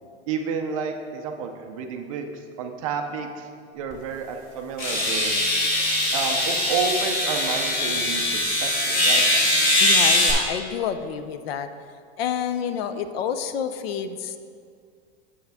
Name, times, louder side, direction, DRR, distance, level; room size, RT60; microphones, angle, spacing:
voice 1, 0.3-3.5 3.7-5.4 6.1-9.2, right 5 dB, 30° right, 4 dB, 0.4 m, -30 dB
sound 1, 3.9-4.0 4.8-10.3, left 1 dB, 25° left, 1.8 m, -21 dB
voice 2, 9.8-11.7 12.2-14.4, left 8 dB, 60° left, 10 dB, 0.5 m, -29 dB
8.9 x 7.1 x 3.4 m, 2.2 s
supercardioid pair, 170°, 34 cm